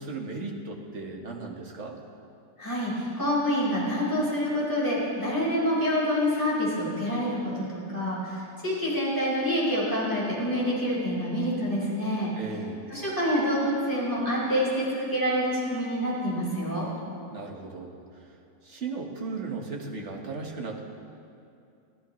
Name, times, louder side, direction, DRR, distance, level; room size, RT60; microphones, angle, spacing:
voice 1, 0.0-2.0 12.4-12.8 17.3-18.0 18.7-20.8, right 3 dB, 45° right, 1 dB, 1.7 m, -36 dB
voice 2, 2.6-12.3 12.9-16.9, equal, 10° left, -7 dB, 4.8 m, -27 dB
23.5 x 15.0 x 3.2 m, 2.5 s
omnidirectional pair, 1.7 m